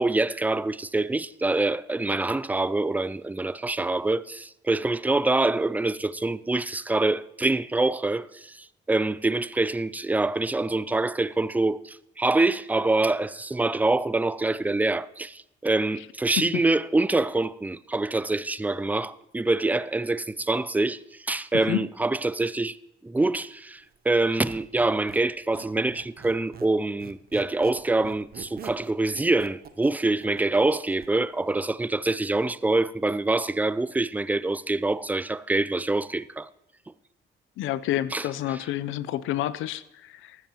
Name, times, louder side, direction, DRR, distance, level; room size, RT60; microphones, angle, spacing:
voice 1, 0.0-22.8 23.0-36.5 38.1-38.3, right 2 dB, 10° right, 0.3 m, -25 dB
voice 2, 21.5-21.9 37.6-40.4, left 13 dB, 85° left, 0.5 m, -29 dB
Squeak, 24.2-26.7 27.0-31.1, right 7 dB, 50° right, 0.8 m, -45 dB
15.0 x 12.5 x 2.9 m
cardioid pair, 90°, 20 cm